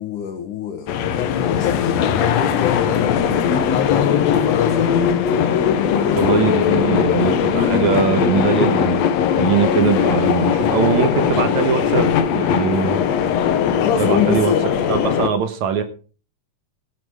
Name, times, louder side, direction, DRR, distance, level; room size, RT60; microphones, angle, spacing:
voice 1, 0.0-4.9 13.8-14.7, left 8 dB, 90° left, 3 dB, 3.0 m, -24 dB
sound 1, 0.9-15.3, left 8 dB, 65° left, 2.0 m, -19 dB
voice 2, 6.2-9.0 9.3-13.0 13.9-14.5 14.9-15.8, right 7 dB, 70° right, 8 dB, 2.5 m, -21 dB
17.5 x 7.8 x 4.8 m, 0.38 s
omnidirectional pair, 3.5 m